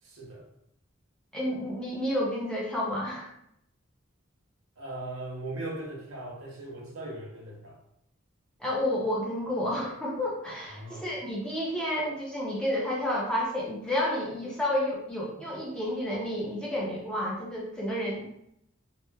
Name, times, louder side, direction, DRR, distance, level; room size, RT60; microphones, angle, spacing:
voice 1, 0.0-0.5 4.8-7.8 10.7-11.1, right 2 dB, 80° right, -2 dB, 0.8 m, -39 dB
voice 2, 1.3-3.3 8.6-18.3, left 1 dB, 5° left, -5 dB, 0.5 m, -30 dB
2.9 x 2.1 x 2.2 m, 0.74 s
head